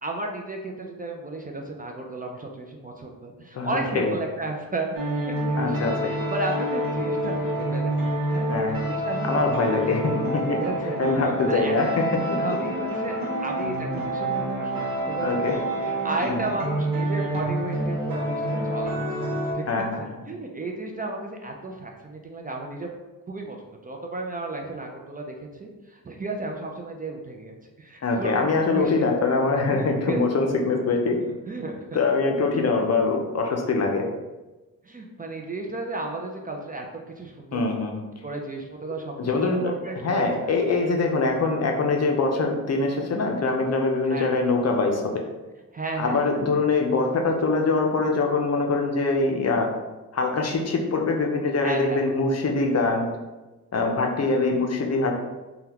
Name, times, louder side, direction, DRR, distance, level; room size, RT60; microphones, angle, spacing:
voice 1, 0.0-8.5 8.9-10.0 10.5-11.0 11.5-11.7 12.4-13.2 13.4-15.6 16.0-19.0 19.5-19.7 20.0-22.9 23.3-23.6 23.8-28.4 28.7-29.2 29.6-30.2 31.5-32.0 34.8-36.9 37.2-37.6 38.2-39.1 39.4-40.6 44.1-44.3 45.7-46.4 51.6-52.0, right 2 dB, 25° right, 1 dB, 0.4 m, -33 dB
voice 2, 3.5-4.1 5.6-6.0 8.5-8.8 9.2-10.6 11.0-12.4 15.2-15.5 16.3-16.5 19.7-20.0 28.0-31.2 31.9-34.0 37.5-38.0 39.2-39.7 40.0-45.0 46.0-49.7 50.1-53.1 53.7-55.1, left 3 dB, 50° left, 2 dB, 0.6 m, -23 dB
sound 1, 5.0-19.5, right 1 dB, 75° right, 0.8 m, -27 dB
3.5 x 2.3 x 2.8 m, 1.1 s
cardioid pair, 80°, 34 cm